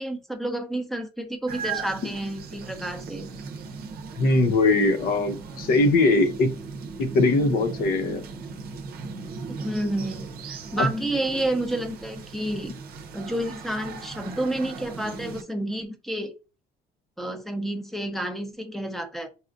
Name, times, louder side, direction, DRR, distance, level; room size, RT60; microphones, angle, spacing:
voice 1, 0.0-3.3 9.5-12.7 13.1-16.3 17.2-19.3, right 1 dB, ahead, 6 dB, 0.6 m, -30 dB
sound 1, 1.5-15.4, right 5 dB, 65° right, 0.6 m, -38 dB
voice 2, 4.2-6.5 7.0-8.2 10.8-10.9, left 2 dB, 60° left, 8 dB, 0.6 m, -21 dB
4.1 x 2.4 x 2.5 m, 0.31 s
cardioid pair, 110°, 17 cm